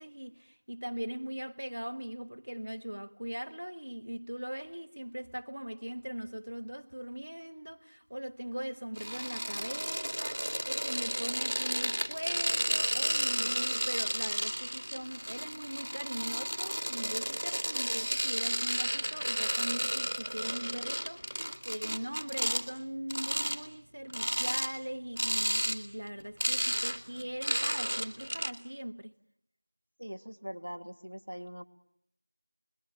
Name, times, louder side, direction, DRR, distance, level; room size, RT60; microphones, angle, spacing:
voice 1, 0.0-29.1, equal, 40° right, 1.4 m, -40 dB
sound 1, 8.9-22.6 23.1-23.6 24.1-24.7 25.2-25.8 26.1-28.5, equal, 15° right, 1.2 m, -32 dB
voice 2, 30.0-31.6, equal, 70° right, 2.2 m, -42 dB
29.0 x 21.5 x 8.9 m
figure-of-eight pair, 180°, 0 cm